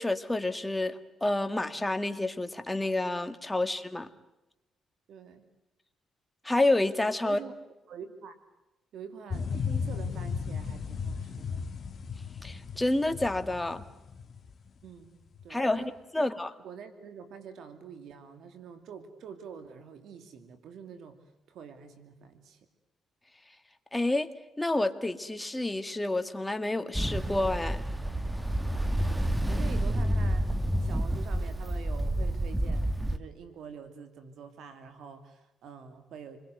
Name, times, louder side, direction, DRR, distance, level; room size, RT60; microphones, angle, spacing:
voice 1, 0.0-4.1 6.4-7.4 12.4-13.8 15.5-15.8 16.1-16.5 23.9-24.3 24.6-27.8, left 2 dB, 10° left, 8 dB, 1.9 m, -29 dB
voice 2, 5.1-5.4 7.2-7.5 7.9-8.4 8.9-11.6 14.8-15.9 16.2-16.3 16.6-22.6 28.9-36.4, right 6 dB, 75° right, 9 dB, 2.6 m, -46 dB
sound 1, 9.3-14.9 15.4-15.5, left 6 dB, 50° left, 1.5 m, -35 dB
Ocean, 26.9-33.2, right 1 dB, 10° right, 1.4 m, -29 dB
28.5 x 22.0 x 7.9 m, 0.96 s
cardioid pair, 90°, 0 cm